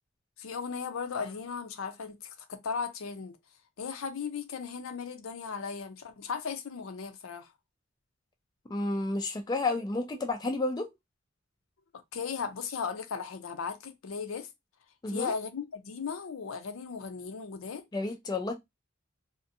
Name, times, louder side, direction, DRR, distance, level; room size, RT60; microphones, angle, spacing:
voice 1, 0.4-3.4 3.8-7.5 12.1-14.5 15.1-17.8, left 5 dB, 80° left, 0.5 m, -36 dB
voice 2, 8.7-10.9 15.0-15.3 17.9-18.5, left 2 dB, 20° left, 0.3 m, -31 dB
2.6 x 2.1 x 2.6 m
head